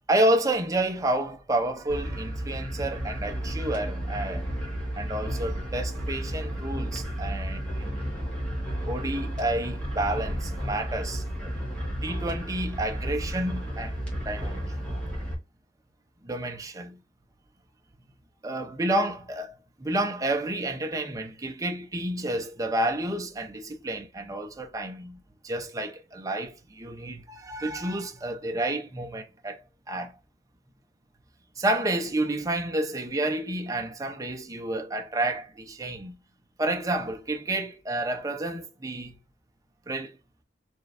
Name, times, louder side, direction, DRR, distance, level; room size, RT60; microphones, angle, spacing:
voice 1, 0.1-4.4 5.0-8.0 8.9-11.5 12.0-14.6 16.2-17.0 18.4-29.6 29.9-30.1 31.6-36.2 36.6-39.2 39.9-40.1, right 1 dB, 20° right, 0.6 m, -30 dB
sound 1, 1.9-15.3, equal, 5° left, 1.6 m, -32 dB
4.5 x 3.2 x 2.5 m
head